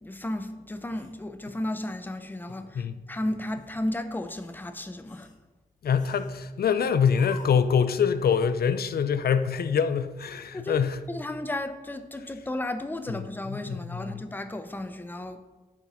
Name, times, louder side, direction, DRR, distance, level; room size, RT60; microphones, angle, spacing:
voice 1, 0.0-5.3 10.5-10.8 11.1-15.4, left 1 dB, 10° left, 0.5 m, -34 dB
sound 1, 0.9-2.1 2.5-2.7 3.2-3.7 4.2-4.7 5.1-5.4 6.0-6.5 7.1-7.8, left 4 dB, 50° left, 0.9 m, -50 dB
voice 2, 5.8-11.0 13.5-14.2, left 7 dB, 70° left, 0.4 m, -25 dB
8.4 x 5.8 x 4.0 m
wide cardioid pair, 165°, 17 cm